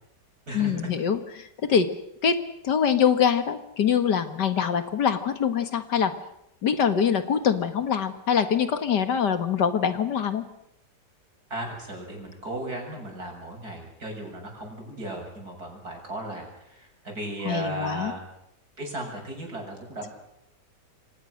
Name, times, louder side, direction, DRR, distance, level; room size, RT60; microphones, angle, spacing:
voice 1, 0.5-1.9 2.2-2.4 2.6-6.1 6.6-10.4 17.5-18.1, left 7 dB, 80° left, 9 dB, 2.3 m, -24 dB
voice 2, 11.5-18.2 18.8-20.1, right 1 dB, 60° right, 1 dB, 7.7 m, -36 dB
28.0 x 25.0 x 6.5 m, 0.80 s
omnidirectional pair, 1.8 m